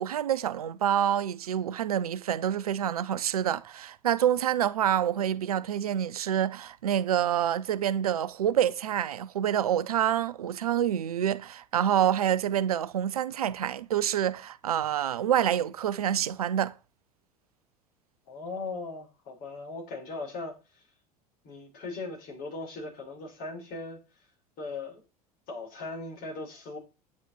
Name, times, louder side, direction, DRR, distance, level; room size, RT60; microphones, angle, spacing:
voice 1, 0.0-16.8, right 10 dB, 75° right, 0.6 m, -27 dB
voice 2, 18.3-20.8 21.4-24.0 24.6-25.0 25.5-26.8, left 3 dB, 50° left, 4.6 m, -38 dB
9.5 x 8.6 x 4.4 m
figure-of-eight pair, 70°, 19 cm